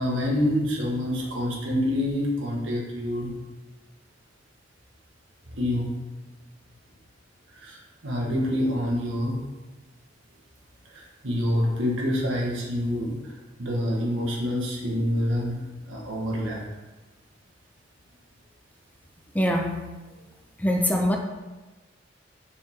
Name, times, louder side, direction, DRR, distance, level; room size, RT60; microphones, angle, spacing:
voice 1, 0.0-3.3 5.5-5.9 7.5-9.4 10.9-16.6, left 1 dB, 80° right, -2 dB, 1.8 m, -27 dB
voice 2, 19.3-19.8 20.6-21.2, equal, 10° left, 2 dB, 0.6 m, -23 dB
7.2 x 5.4 x 3.8 m, 1.1 s
head